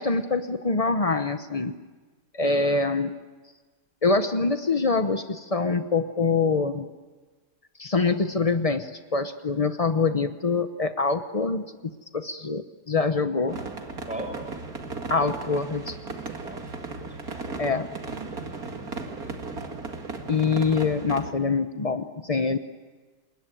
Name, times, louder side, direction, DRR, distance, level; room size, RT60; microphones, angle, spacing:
voice 1, 0.0-1.7 2.3-3.1 4.0-6.9 7.8-13.6 15.1-16.0 17.6-17.9 20.3-22.6, left 4 dB, 65° left, 8 dB, 0.3 m, -25 dB
voice 2, 2.4-2.8 14.0-14.4 16.4-17.0 18.0-19.4, right 1 dB, 5° right, 2 dB, 6.9 m, -40 dB
sound 1, 13.5-21.3, right 3 dB, 45° right, 2.5 m, -36 dB
28.0 x 21.5 x 9.3 m, 1.3 s
omnidirectional pair, 2.2 m